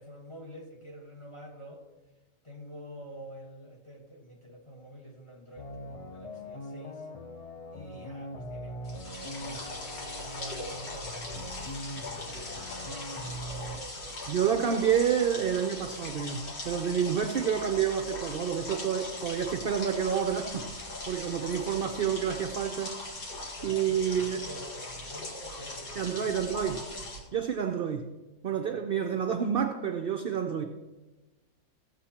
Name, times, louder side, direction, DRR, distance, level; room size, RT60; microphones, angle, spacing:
voice 1, 0.0-1.8 2.4-7.1 7.7-14.4 23.6-24.0 24.3-26.5 27.0-27.4, equal, 20° left, 0 dB, 1.3 m, -48 dB
sound 1, 5.6-13.8, equal, 50° left, 0.4 m, -42 dB
sound 2, 8.8-27.2, left 2 dB, 85° left, 2.3 m, -40 dB
voice 2, 14.3-22.9 23.6-24.4 26.0-26.8 27.3-28.0 28.4-30.6, right 8 dB, 55° right, 5 dB, 0.6 m, -29 dB
15.5 x 7.6 x 2.9 m, 1.1 s
omnidirectional pair, 1.5 m